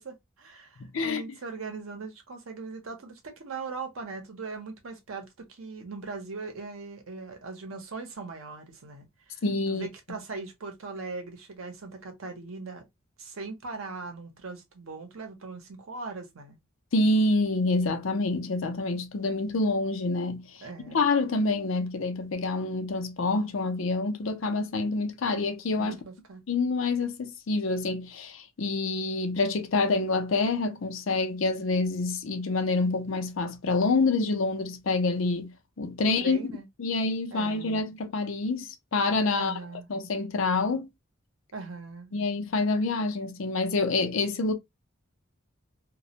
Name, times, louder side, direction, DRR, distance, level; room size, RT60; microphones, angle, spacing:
voice 1, 0.0-9.4 9.7-12.9 13.2-16.6 20.6-21.1 25.8-26.4 36.0-36.7 37.3-37.7 39.3-39.9 41.5-42.1, right 4 dB, 85° right, 0.7 m, -40 dB
voice 2, 9.4-9.9 16.9-20.5 20.9-26.0 26.5-36.4 36.8-39.5 39.9-40.9 42.1-44.5, left 3 dB, 70° left, 0.5 m, -27 dB
2.2 x 2.1 x 2.7 m
head